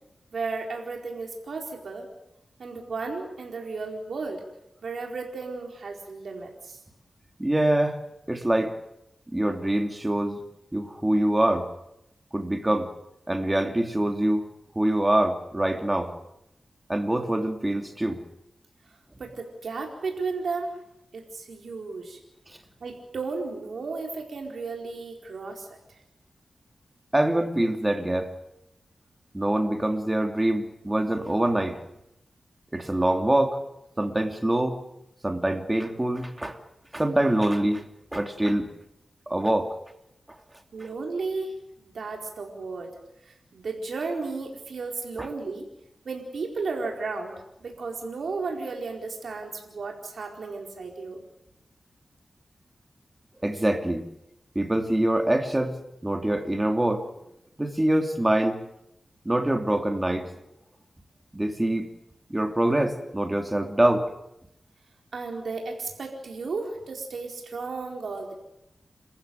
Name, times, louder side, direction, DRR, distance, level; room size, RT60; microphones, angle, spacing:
voice 1, 0.3-2.1 2.6-4.4 4.8-6.8 19.2-20.8 21.1-22.2 22.8-25.7 40.7-42.9 43.5-45.7 46.0-47.3 47.6-51.2 65.1-68.3, right 4 dB, 80° right, 1 dB, 4.4 m, -34 dB
voice 2, 7.4-8.0 8.3-8.7 9.3-10.4 10.7-11.7 12.3-12.9 13.3-14.5 14.7-16.1 16.9-18.2 27.1-28.3 29.3-31.8 32.7-33.6 34.0-34.8 35.2-36.6 36.9-37.8 38.1-38.7 39.3-39.7 45.2-45.3 53.4-54.0 54.5-55.8 56.0-57.0 57.6-58.6 59.2-60.3 61.3-61.9 62.3-64.1, right 1 dB, 15° right, 5 dB, 2.9 m, -24 dB
29.0 x 15.0 x 9.4 m, 0.86 s
wide cardioid pair, 75°, 0 cm